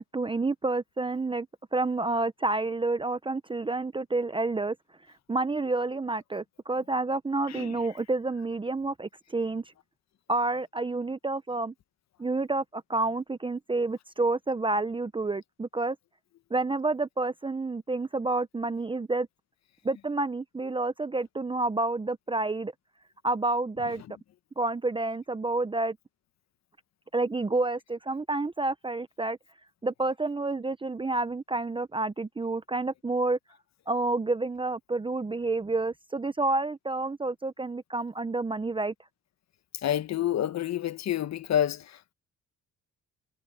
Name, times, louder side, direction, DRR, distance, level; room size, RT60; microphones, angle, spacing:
voice 1, 0.0-1.5 1.7-4.8 5.3-9.6 10.3-11.7 12.2-16.0 16.5-19.3 19.8-22.7 23.2-24.0 24.6-26.0 27.1-29.4 29.8-33.4 33.9-38.9, right 2 dB, 15° right, 0.7 m, -29 dB
voice 2, 39.8-42.1, left 11 dB, 60° left, 1.2 m, -28 dB
cardioid pair, 90°, 30 cm